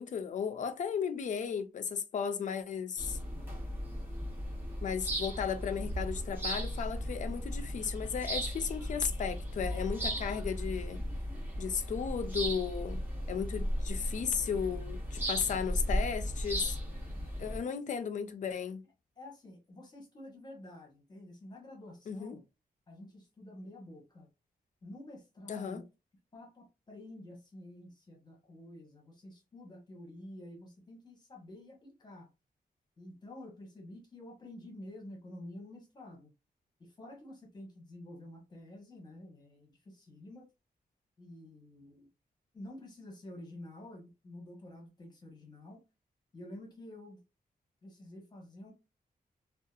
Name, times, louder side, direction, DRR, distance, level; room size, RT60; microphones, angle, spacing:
voice 1, 0.0-3.2 4.8-11.0 11.6-13.0 13.3-16.8 17.4-18.8 22.1-22.4 25.5-25.8, left 7 dB, 50° left, 0.4 m, -35 dB
sound 1, 3.0-17.6, equal, 15° right, 0.9 m, -36 dB
voice 2, 17.6-17.9 19.2-22.4 22.9-24.3 24.8-25.8 26.3-32.3 33.0-36.3 36.8-40.5 41.2-42.1 42.5-45.8 46.3-47.2 47.8-48.7, left 1 dB, 25° left, 0.9 m, -49 dB
2.6 x 2.3 x 2.3 m
wide cardioid pair, 175°, 16 cm